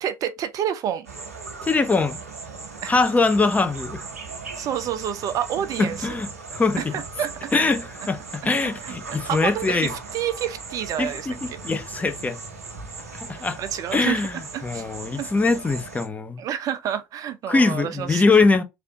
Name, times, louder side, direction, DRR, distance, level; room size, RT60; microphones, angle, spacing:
voice 1, 0.0-1.1 2.8-2.9 4.6-6.2 6.8-7.5 8.8-11.3 13.6-14.2 14.5-14.8 15.2-15.3 16.4-18.2, right 10 dB, 45° right, 0.6 m, -29 dB
sound 1, 1.0-16.1, right 4 dB, 85° right, 0.7 m, -38 dB
voice 2, 1.6-2.2 2.9-4.0 5.8-6.9 7.5-9.9 11.0-12.4 13.3-13.6 13.9-16.4 17.5-18.6, left 3 dB, 20° left, 0.7 m, -22 dB
3.4 x 2.4 x 2.8 m
figure-of-eight pair, 65°, 8 cm